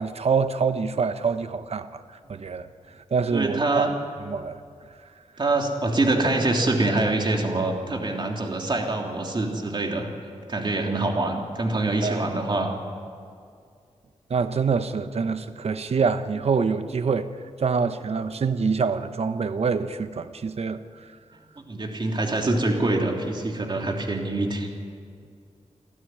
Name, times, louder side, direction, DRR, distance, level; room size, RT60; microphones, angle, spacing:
voice 1, 0.0-1.9 2.3-2.7 3.1-3.9 4.3-4.6 12.0-12.2 14.3-17.3 17.6-20.8, right 5 dB, 60° right, 1.0 m, -25 dB
voice 2, 3.3-3.9 5.4-10.1 10.5-12.7 21.7-24.7, right 2 dB, 40° right, 3.2 m, -25 dB
28.0 x 12.5 x 9.7 m
wide cardioid pair, 95°, 12 cm